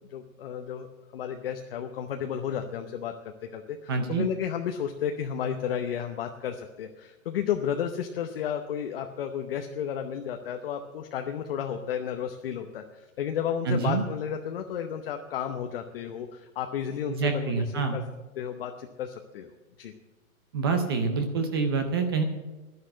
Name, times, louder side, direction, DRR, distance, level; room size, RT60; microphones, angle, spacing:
voice 1, 0.1-0.9 1.1-18.0 18.4-19.9, left 8 dB, 40° left, 5 dB, 0.8 m, -33 dB
voice 2, 3.9-4.3 13.7-14.0 17.1-18.0 20.5-22.2, right 4 dB, 15° right, 7 dB, 0.5 m, -26 dB
11.0 x 10.5 x 7.6 m, 1.1 s
hypercardioid pair, 155°, 43 cm